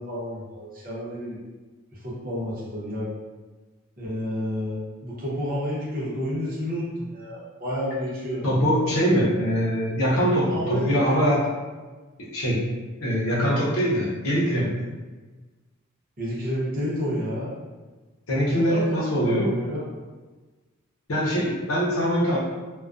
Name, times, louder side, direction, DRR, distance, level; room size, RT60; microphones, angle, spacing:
voice 1, 0.0-1.4 1.9-3.1 4.0-8.4 10.5-11.2 16.2-17.5 18.5-19.8, equal, 45° right, -6 dB, 0.7 m, -30 dB
voice 2, 8.4-11.4 12.3-12.6 13.0-14.7 18.3-19.5 21.1-22.4, equal, 90° left, -4 dB, 0.7 m, -22 dB
2.3 x 2.2 x 2.4 m, 1.3 s
head